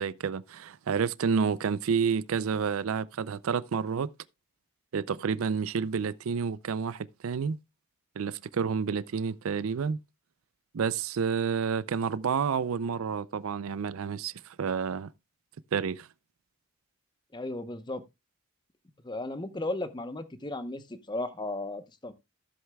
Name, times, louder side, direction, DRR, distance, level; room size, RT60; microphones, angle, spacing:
voice 1, 0.0-4.1 4.9-7.6 8.2-10.0 10.7-15.1 15.7-16.1, right 6 dB, 75° right, 0.4 m, -29 dB
voice 2, 17.3-18.0 19.0-22.1, left 2 dB, 20° left, 0.8 m, -35 dB
14.0 x 7.9 x 2.2 m
head